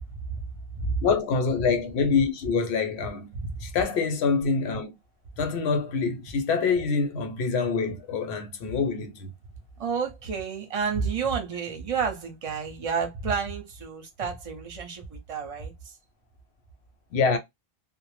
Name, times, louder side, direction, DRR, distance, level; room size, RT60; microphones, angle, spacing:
voice 1, 1.0-3.3 3.6-4.9 5.4-9.3 17.1-17.4, left 5 dB, 80° left, 0.9 m, -25 dB
voice 2, 9.8-15.9, right 6 dB, 40° right, 0.6 m, -30 dB
2.0 x 2.0 x 3.0 m
omnidirectional pair, 1.1 m